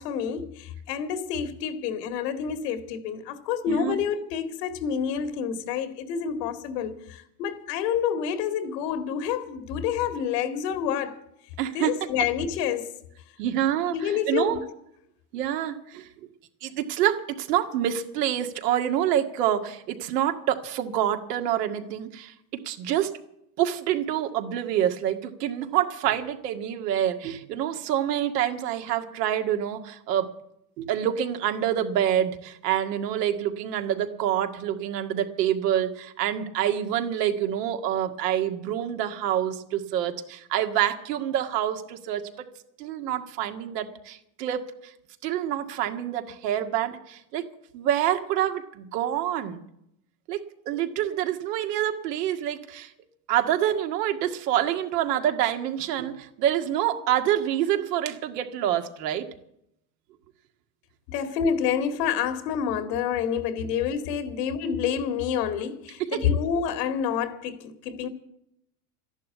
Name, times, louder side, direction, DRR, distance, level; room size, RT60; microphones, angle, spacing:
voice 1, 0.0-11.2 11.7-12.9 13.9-14.6 61.1-68.1, left 7 dB, 85° left, 2.2 m, -28 dB
voice 2, 3.7-4.0 11.6-11.9 13.4-14.6 15.3-16.1 16.6-23.1 23.6-30.3 30.8-42.3 42.8-44.6 45.2-47.5 47.7-49.6 50.3-52.9 53.3-59.3 66.0-66.2, right 11 dB, 90° right, 2.0 m, -27 dB
13.5 x 11.0 x 8.5 m
supercardioid pair, 135°, 47 cm